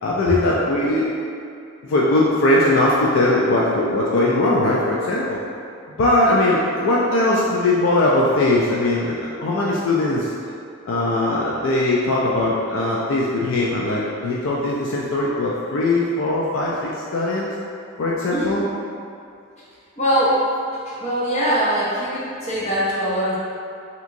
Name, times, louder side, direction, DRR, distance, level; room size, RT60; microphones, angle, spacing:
voice 1, 0.0-1.1 1.8-5.4 6.0-10.3 10.9-17.5 18.0-18.6, left 2 dB, 70° left, -5 dB, 0.4 m, -20 dB
voice 2, 20.0-20.4 20.7-23.4, equal, 35° left, -8 dB, 0.7 m, -22 dB
3.4 x 2.9 x 2.5 m, 2.4 s
head